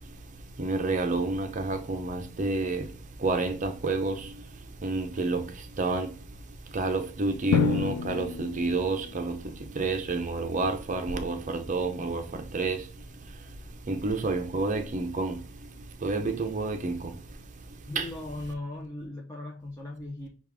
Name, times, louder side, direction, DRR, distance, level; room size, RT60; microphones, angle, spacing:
voice 1, 0.6-2.9 3.2-4.3 4.8-5.5 5.8-6.1 6.7-12.9 13.9-15.4 16.0-17.1 18.0-18.1, right 3 dB, 35° right, 0.6 m, -29 dB
Drum, 7.5-9.4, left 8 dB, 90° left, 0.3 m, -29 dB
voice 2, 17.9-20.3, left 2 dB, 15° left, 0.6 m, -38 dB
6.2 x 2.4 x 3.5 m
head